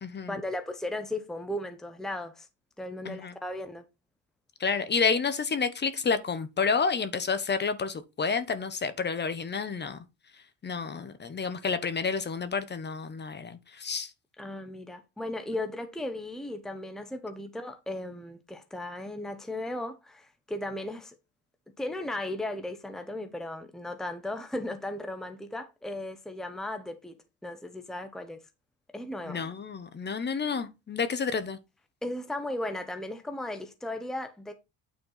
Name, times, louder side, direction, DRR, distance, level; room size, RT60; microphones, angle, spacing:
voice 1, 0.3-2.5 2.8-3.8 14.4-21.2 21.8-27.2 27.4-28.4 28.9-29.4 32.0-34.5, left 1 dB, ahead, 0.9 m, -36 dB
voice 2, 4.6-10.0 10.6-14.1 29.3-31.6, left 5 dB, 30° left, 1.1 m, -30 dB
9.1 x 4.7 x 4.0 m
cardioid pair, 120°, 38 cm